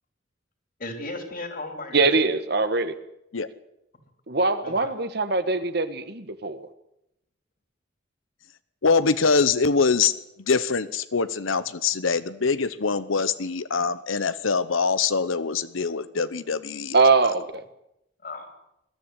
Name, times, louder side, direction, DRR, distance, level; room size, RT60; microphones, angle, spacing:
voice 1, 0.8-2.1 4.6-4.9 5.5-5.6 18.2-18.6, left 2 dB, 45° left, 6 dB, 3.8 m, -36 dB
voice 2, 1.9-2.9 4.3-6.7 16.9-17.6, right 3 dB, 55° right, 11 dB, 1.5 m, -22 dB
voice 3, 8.8-17.0, left 5 dB, 85° left, 14 dB, 0.9 m, -24 dB
22.0 x 13.5 x 9.9 m, 0.82 s
head